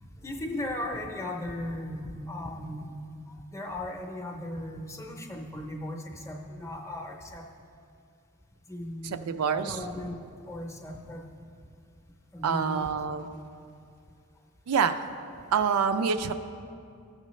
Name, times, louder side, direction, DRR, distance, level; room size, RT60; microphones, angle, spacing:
voice 1, 0.2-2.9 3.3-7.4 8.7-10.2 10.4-11.2 12.3-13.0, left 1 dB, 15° left, 2 dB, 0.7 m, -37 dB
voice 2, 9.3-9.8 12.4-13.4 14.7-15.0 15.5-16.3, right 6 dB, 80° right, 9 dB, 0.4 m, -26 dB
14.5 x 6.5 x 3.1 m, 2.4 s
head